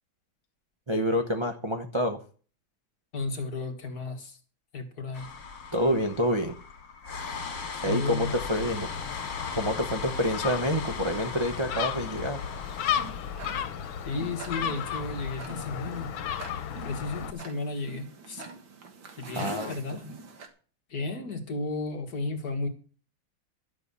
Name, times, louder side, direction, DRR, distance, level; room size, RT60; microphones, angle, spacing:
voice 1, 0.9-2.2 5.7-6.5 7.8-8.9 9.5-12.4 19.3-20.1, equal, 20° right, 0.7 m, -28 dB
voice 2, 3.1-4.4 4.7-5.3 7.7-8.3 14.1-16.1 16.7-18.4 19.2-20.0 20.9-22.7, left 3 dB, 50° left, 2.2 m, -33 dB
sound 1, 5.1-13.1, left 5 dB, 70° left, 2.6 m, -38 dB
Gull seagull, 8.2-17.3, left 9 dB, 90° left, 1.7 m, -34 dB
Tick-tock, 12.6-20.5, right 4 dB, 75° right, 2.4 m, -45 dB
12.5 x 6.6 x 6.9 m
omnidirectional pair, 2.1 m